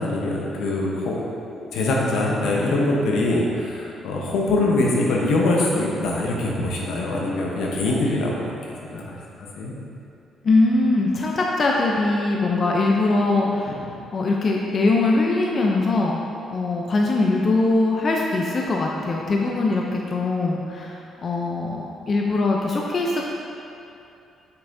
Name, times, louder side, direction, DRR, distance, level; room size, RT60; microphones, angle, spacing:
voice 1, 0.0-8.5 8.9-9.7 13.3-13.8, left 2 dB, 85° left, -3 dB, 1.0 m, -23 dB
voice 2, 10.4-13.8 14.1-16.2 16.5-23.2, left 2 dB, 45° left, -1 dB, 0.6 m, -21 dB
6.8 x 5.6 x 2.7 m, 2.7 s
cardioid pair, 90°, 0 cm